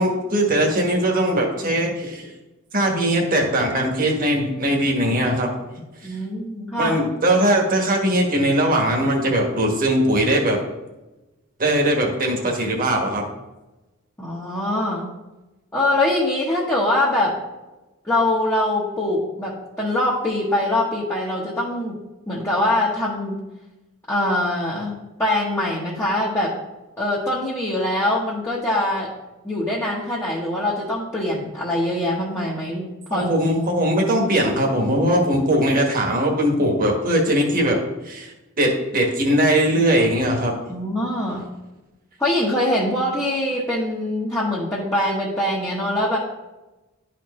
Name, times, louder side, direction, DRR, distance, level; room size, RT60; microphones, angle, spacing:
voice 1, 0.0-2.3 2.7-5.5 6.1-6.2 6.8-10.6 11.6-13.2 33.1-37.8 38.0-40.5, right 1 dB, 40° right, 0 dB, 1.5 m, -20 dB
voice 2, 6.0-7.0 14.2-15.1 15.7-17.3 18.0-21.9 22.3-23.4 24.1-26.5 27.0-29.1 29.4-33.3 40.7-41.5 42.2-46.2, left 1 dB, 10° left, -6 dB, 1.2 m, -23 dB
11.5 x 4.5 x 3.1 m, 1.1 s
head